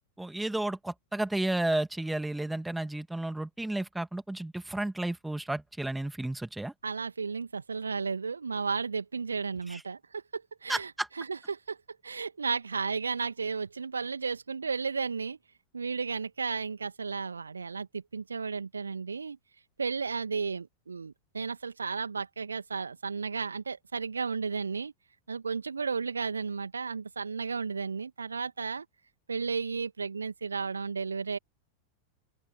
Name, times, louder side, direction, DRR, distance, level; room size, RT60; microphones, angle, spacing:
voice 1, 0.2-6.7 9.7-9.8 10.7-11.1, right 1 dB, 5° right, 2.7 m, -32 dB
voice 2, 6.8-10.9 11.2-15.4 15.7-19.4 19.8-24.9 25.3-28.9 29.3-31.4, right 5 dB, 75° right, 2.5 m, -33 dB
open air
figure-of-eight pair, 90°, 0 cm